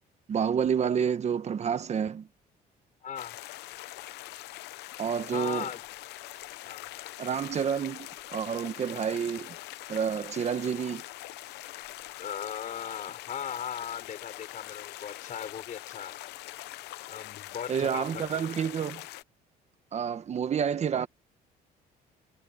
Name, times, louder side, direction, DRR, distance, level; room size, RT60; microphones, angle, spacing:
voice 1, 0.3-2.3 5.0-5.7 7.2-9.5 9.9-11.0 17.7-19.0 19.9-21.1, right 7 dB, 40° right, 1.3 m, -29 dB
voice 2, 3.0-3.4 5.3-5.8 6.6-6.9 12.2-16.2 17.1-18.3, left 8 dB, 50° left, 4.7 m, -38 dB
sound 1, 3.2-19.2, left 17 dB, 80° left, 0.8 m, -43 dB
cardioid pair, 110°, 17 cm